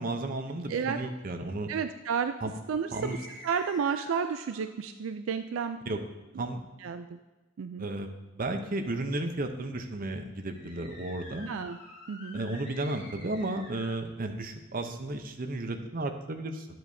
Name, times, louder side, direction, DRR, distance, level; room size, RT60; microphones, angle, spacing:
voice 1, 0.0-1.7 2.4-2.5 2.9-3.2 5.9-6.0 6.4-6.6 7.8-8.1 8.3-11.5 12.3-16.7, right 2 dB, 45° right, 6 dB, 0.7 m, -33 dB
voice 2, 0.7-1.0 1.7-2.4 2.7-5.8 6.8-7.2 7.6-7.9 11.5-11.8 12.1-12.4, right 6 dB, 75° right, 9 dB, 0.4 m, -32 dB
sound 1, 2.9-4.7 10.4-14.0, left 1 dB, 40° left, 3.1 m, -49 dB
10.5 x 7.7 x 2.7 m, 1.1 s
head